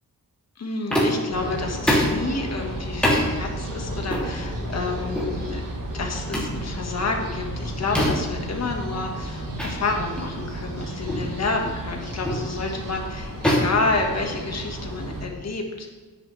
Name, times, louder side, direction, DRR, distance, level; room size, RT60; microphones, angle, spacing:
voice 1, 0.6-5.6 5.9-15.9, left 3 dB, 50° left, 1 dB, 1.7 m, -29 dB
sound 1, 0.9-1.3 1.9-2.2 3.0-3.3 4.1-4.3 5.1-5.3 6.3-6.6 7.9-8.3 9.6-9.7 10.2-10.3 11.1-11.3 12.2-12.5 13.4-14.7, equal, 5° left, 2.9 m, -23 dB
sound 2, 1.3-15.2, right 1 dB, 75° right, 2.9 m, -33 dB
12.5 x 9.9 x 3.4 m, 1.4 s
wide cardioid pair, 155°, 33 cm